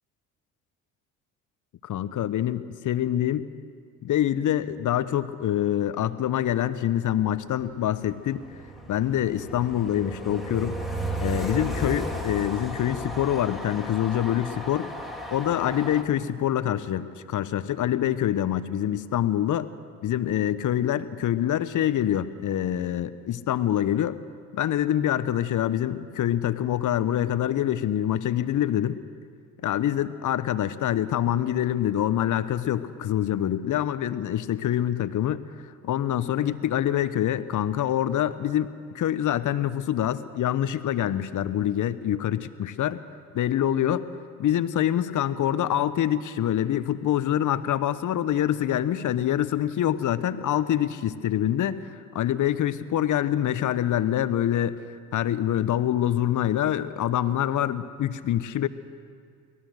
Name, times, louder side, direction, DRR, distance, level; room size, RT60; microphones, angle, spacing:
voice 1, 1.8-3.5 4.0-8.4 8.9-10.8 11.2-14.9 15.3-19.7 20.0-24.2 24.5-29.0 29.6-35.4 35.8-38.7 38.9-43.0 43.3-44.1 44.4-51.9 52.1-54.8 55.1-58.7, left 11 dB, 45° left, 14 dB, 1.0 m, -25 dB
Train, 7.6-16.0, right 1 dB, ahead, 2.4 m, -34 dB
24.5 x 17.5 x 6.5 m, 2.2 s
hypercardioid pair, 55°, 42 cm